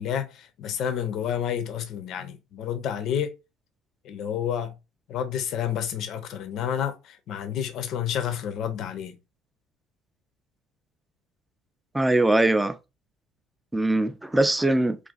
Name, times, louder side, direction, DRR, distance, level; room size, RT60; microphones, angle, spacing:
voice 1, 0.0-3.4 4.0-4.7 5.1-9.1, left 9 dB, 55° left, 0.4 m, -30 dB
voice 2, 11.9-12.7 13.7-15.0, right 2 dB, 10° right, 0.3 m, -21 dB
2.4 x 2.3 x 2.3 m
figure-of-eight pair, 60°, 0 cm